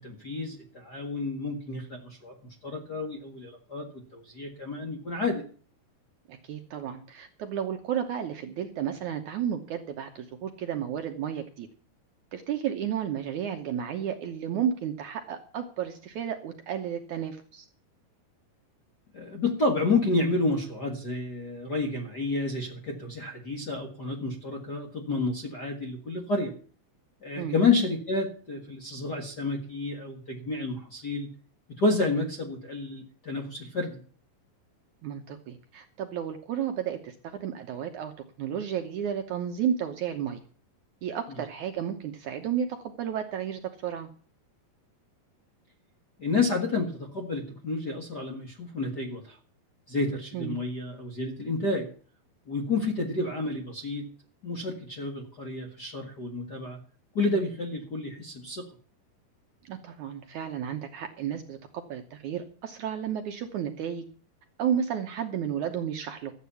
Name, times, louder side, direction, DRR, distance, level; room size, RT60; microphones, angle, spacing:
voice 1, 0.0-2.3 2.6-3.9 4.1-5.4 19.1-26.5 27.2-31.3 31.8-34.0 46.2-49.3 49.9-51.9 52.5-54.1 54.4-56.8 57.1-58.6, left 3 dB, 40° left, 0 dB, 1.5 m, -30 dB
voice 2, 6.3-11.7 12.3-17.7 27.4-27.6 35.0-38.1 38.4-40.4 41.0-44.1 50.3-50.6 59.6-64.1 64.6-66.3, right 9 dB, 70° right, 5 dB, 2.0 m, -32 dB
13.5 x 8.6 x 7.0 m, 0.43 s
omnidirectional pair, 4.4 m